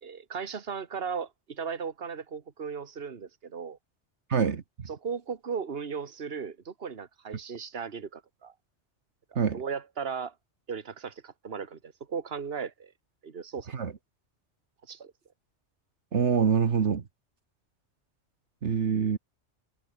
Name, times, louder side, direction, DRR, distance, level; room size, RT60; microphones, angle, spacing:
voice 1, 0.0-3.8 4.9-8.5 9.5-10.3 10.7-12.9 13.2-13.7 14.9-15.1, right 6 dB, 55° right, 1.8 m, -36 dB
voice 2, 4.3-4.6 9.4-9.6 13.7-13.9 16.1-17.0 18.6-19.2, right 6 dB, 75° right, 1.6 m, -25 dB
omnidirectional pair, 1.2 m